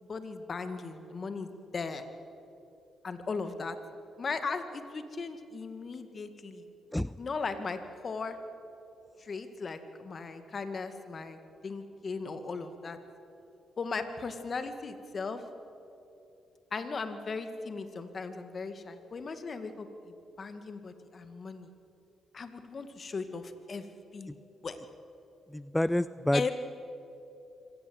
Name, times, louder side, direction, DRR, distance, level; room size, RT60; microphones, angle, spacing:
voice 1, 0.0-2.0 3.0-3.8 4.2-6.7 7.2-7.8 8.0-8.4 9.2-11.4 11.6-13.0 13.8-15.4 16.7-19.9 20.4-21.7 22.3-23.9 24.1-24.3 24.6-24.8 26.3-26.5, left 4 dB, 50° left, 9 dB, 2.2 m, -37 dB
voice 2, 25.5-26.5, left 1 dB, 10° left, 16 dB, 0.5 m, -28 dB
25.0 x 17.5 x 9.0 m, 2.8 s
supercardioid pair, 60°, 0 cm